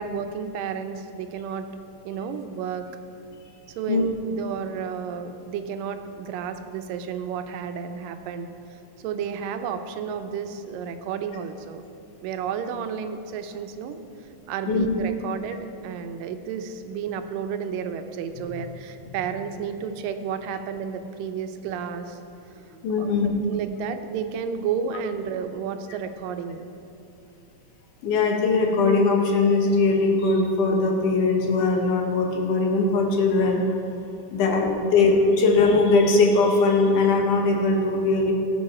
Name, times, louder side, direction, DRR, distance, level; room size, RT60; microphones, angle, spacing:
voice 1, 0.0-1.7 2.1-2.9 3.8-11.8 12.2-14.0 14.5-22.2 23.0-26.7 34.4-34.6 35.0-35.1, right 7 dB, 85° right, 8 dB, 2.3 m, -32 dB
voice 2, 14.7-15.0 22.8-23.3 28.0-33.6 34.3-38.3, left 3 dB, 70° left, 2 dB, 2.6 m, -20 dB
16.5 x 7.6 x 4.3 m, 2.9 s
omnidirectional pair, 3.9 m